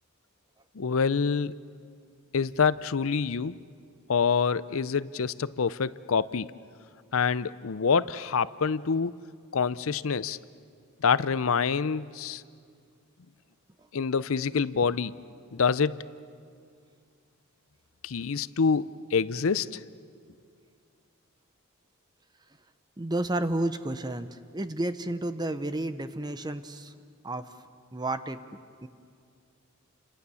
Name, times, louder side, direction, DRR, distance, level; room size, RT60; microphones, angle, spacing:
voice 1, 0.7-1.6 2.3-3.6 4.1-6.5 7.1-9.2 9.5-10.4 11.0-12.4 13.9-15.1 15.5-16.1 18.0-19.8, left 5 dB, 65° left, 17 dB, 0.6 m, -26 dB
voice 2, 23.0-26.9 27.2-27.5 27.9-28.4 28.8-28.9, right 1 dB, 20° right, 11 dB, 0.7 m, -31 dB
30.0 x 26.5 x 7.0 m, 2.3 s
head